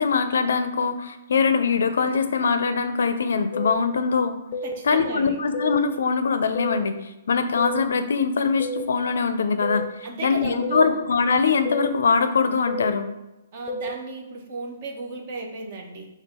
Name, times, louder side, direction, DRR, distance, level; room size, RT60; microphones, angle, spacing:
voice 1, 0.0-4.4 4.8-9.9 10.2-13.1, left 5 dB, 70° left, 10 dB, 0.4 m, -22 dB
sound 1, 3.5-3.7 4.5-4.7 5.5-5.7 6.5-6.8 7.6-7.8 8.6-8.8 9.6-9.8 10.6-10.8 11.7-11.9 12.7-12.9 13.7-13.9, left 1 dB, 20° left, 0.6 m, -30 dB
voice 2, 4.6-5.4 10.0-11.0 13.5-16.1, right 3 dB, 30° right, 1 dB, 0.7 m, -35 dB
5.3 x 2.3 x 4.3 m, 0.95 s
hypercardioid pair, 180°, 0 cm